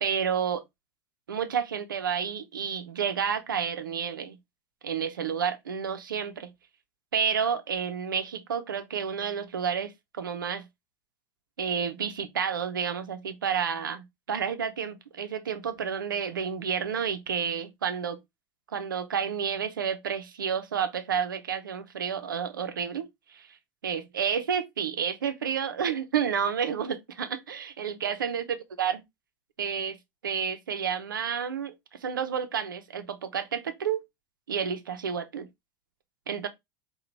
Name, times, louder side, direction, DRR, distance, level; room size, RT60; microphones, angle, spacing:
voice 1, 0.0-0.6 1.3-4.4 4.8-6.5 7.1-10.7 11.6-18.2 18.7-23.5 23.8-29.0 29.6-30.0 30.2-31.7 32.0-34.0 34.5-35.5 36.3-36.5, right 7 dB, 90° right, 0.7 m, -30 dB
5.7 x 2.4 x 3.2 m
hypercardioid pair, 90°, 11 cm